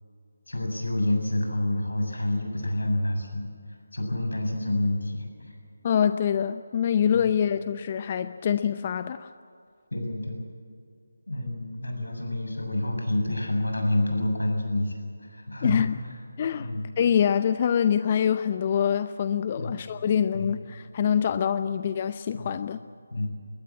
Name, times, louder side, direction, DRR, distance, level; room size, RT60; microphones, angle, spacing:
voice 1, 0.5-3.5 3.9-5.5 7.1-7.3 9.9-10.4 11.3-16.0 16.6-16.9 19.6-19.9 20.3-20.5 22.3-22.5 23.1-23.3, left 1 dB, 75° left, 3 dB, 7.5 m, -28 dB
voice 2, 5.8-9.3 15.6-16.0 16.4-16.7 17.0-22.8, left 8 dB, 30° left, 12 dB, 0.6 m, -25 dB
22.0 x 19.5 x 8.7 m, 2.3 s
figure-of-eight pair, 155°, 0 cm